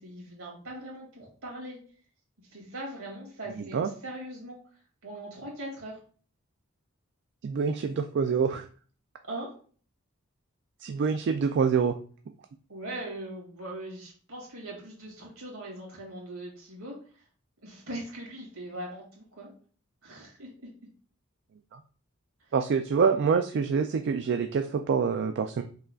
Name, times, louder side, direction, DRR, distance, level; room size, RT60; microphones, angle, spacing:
voice 1, 0.0-1.8 2.5-4.6 5.0-6.0 9.3-9.5 12.7-17.2 17.6-19.5 20.0-20.5 22.4-22.5, right 1 dB, 75° right, -3 dB, 2.3 m, -40 dB
voice 2, 3.6-3.9 7.4-8.7 10.8-11.9 21.7-21.8 22.5-25.6, right 6 dB, 55° right, 7 dB, 0.3 m, -26 dB
5.5 x 3.7 x 2.3 m, 0.43 s
head